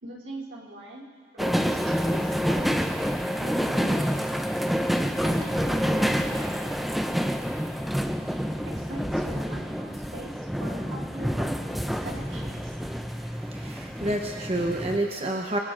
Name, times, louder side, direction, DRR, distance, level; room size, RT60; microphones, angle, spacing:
voice 1, 0.0-1.1 1.3-2.9 3.4-4.3 5.2-6.2 8.6-11.6 12.0-12.8, right 1 dB, 85° right, -5 dB, 3.3 m, -41 dB
sound 1, 1.4-15.0, equal, ahead, 0.5 m, -28 dB
voice 2, 12.9-15.6, right 1 dB, 30° right, 1 dB, 0.9 m, -30 dB
25.0 x 22.5 x 2.6 m, 2.1 s
head